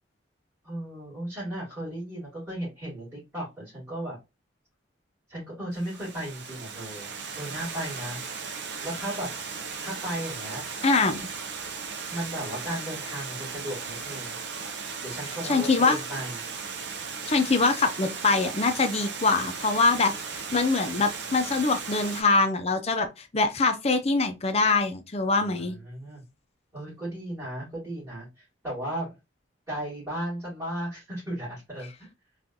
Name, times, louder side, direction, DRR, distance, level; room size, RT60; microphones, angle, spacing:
voice 1, 0.6-4.2 5.3-8.5 8.8-9.3 9.8-10.6 12.1-14.4 15.0-16.4 25.4-26.2 26.7-29.1 29.7-32.1, right 1 dB, 15° right, 2.0 m, -35 dB
Water, 5.7-22.2, right 5 dB, 60° right, 0.6 m, -37 dB
voice 2, 10.8-11.2 15.5-16.0 17.3-25.7, left 3 dB, 30° left, 0.5 m, -24 dB
3.7 x 2.4 x 2.7 m
head